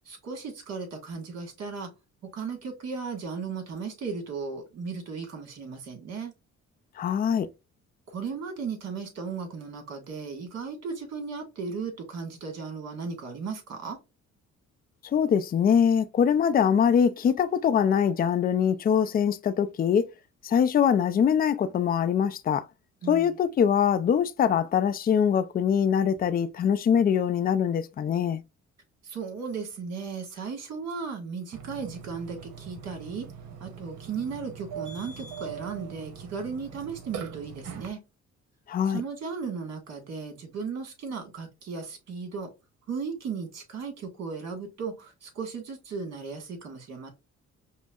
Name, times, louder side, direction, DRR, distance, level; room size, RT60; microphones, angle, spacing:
voice 1, 0.1-1.9 2.3-6.3 8.1-14.0 23.0-23.3 29.0-33.3 33.6-38.0 38.9-42.5 42.9-47.1, right 5 dB, 60° right, 1.5 m, -36 dB
voice 2, 7.0-7.5 15.1-20.1 20.4-22.7 23.1-28.4 38.7-39.0, left 8 dB, 30° left, 0.3 m, -23 dB
Burping eructation, 31.5-37.9, right 7 dB, 75° right, 0.8 m, -41 dB
5.3 x 2.0 x 2.3 m
cardioid pair, 90°, 30 cm